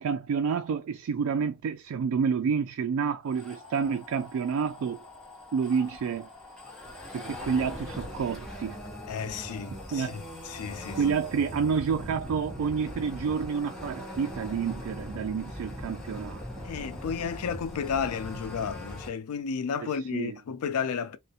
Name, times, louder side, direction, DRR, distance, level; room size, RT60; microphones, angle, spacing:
voice 1, 0.0-5.0 5.5-6.3 7.1-8.8 9.4-9.5 9.9-10.2 11.0-16.4 19.8-20.4, right 6 dB, 70° right, 0.3 m, -29 dB
sound 1, 3.3-19.1, equal, 5° left, 0.8 m, -41 dB
voice 2, 9.1-11.0 16.6-21.2, left 6 dB, 85° left, 0.4 m, -32 dB
2.4 x 2.1 x 2.7 m
head